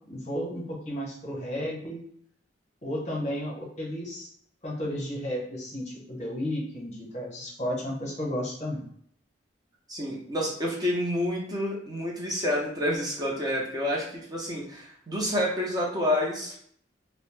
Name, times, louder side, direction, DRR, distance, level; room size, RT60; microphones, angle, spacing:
voice 1, 0.1-2.0 2.8-4.3 4.6-8.8, equal, 40° left, -2 dB, 0.8 m, -33 dB
voice 2, 9.9-16.6, left 1 dB, 20° right, -4 dB, 0.6 m, -29 dB
2.5 x 2.0 x 3.1 m, 0.63 s
head